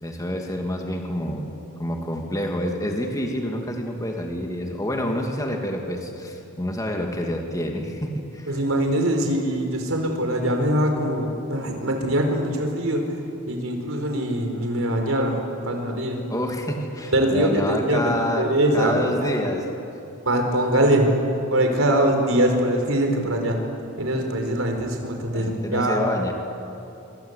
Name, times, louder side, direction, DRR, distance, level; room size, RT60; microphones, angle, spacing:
voice 1, 0.0-1.5 1.8-8.5 16.3-18.5 18.7-19.7 25.3-26.3, left 1 dB, 15° left, 2 dB, 2.5 m, -28 dB
voice 2, 8.5-13.2 13.5-16.2 17.1-19.0 19.3-19.5 20.2-21.1 21.5-23.6 24.0-26.0, right 1 dB, 75° right, 3 dB, 4.9 m, -22 dB
27.0 x 26.0 x 8.4 m, 2.8 s
head